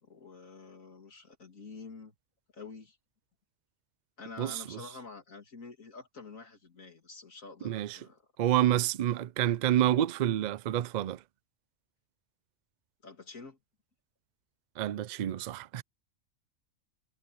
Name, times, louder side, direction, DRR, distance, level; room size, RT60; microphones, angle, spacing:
voice 1, 0.0-2.1 2.5-3.0 4.2-8.2 13.0-13.6, left 4 dB, 85° left, 3.3 m, -48 dB
voice 2, 4.4-4.8 7.6-8.0 8.4-11.2 14.8-15.8, right 12 dB, 70° right, 0.4 m, -28 dB
omnidirectional pair, 1.4 m